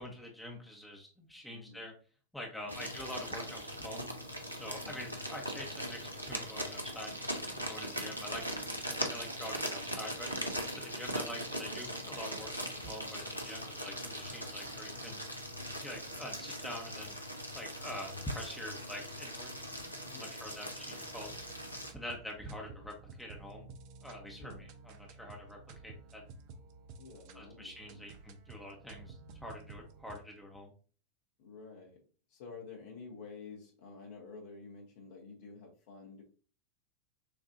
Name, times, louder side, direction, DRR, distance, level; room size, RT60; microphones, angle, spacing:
voice 1, 0.0-1.9 2.3-4.1 4.5-7.2 7.6-8.4 8.9-10.4 10.7-15.2 15.8-17.1 17.5-19.5 20.1-21.3 21.9-23.7 24.0-26.2 27.3-30.7, left 1 dB, 5° left, -1 dB, 1.0 m, -45 dB
voice 2, 1.5-1.9 2.6-2.8 4.8-5.2 11.2-11.3 20.1-20.3 22.6-22.8 24.4-24.6 27.0-28.0 31.4-32.0 32.3-36.2, left 4 dB, 50° left, 0 dB, 1.1 m, -50 dB
sound 1, 2.7-21.9, equal, 90° left, 0.7 m, -40 dB
sound 2, 21.1-30.2, right 4 dB, 45° right, 0.6 m, -53 dB
6.7 x 2.6 x 2.6 m, 0.39 s
figure-of-eight pair, 90°, 0 cm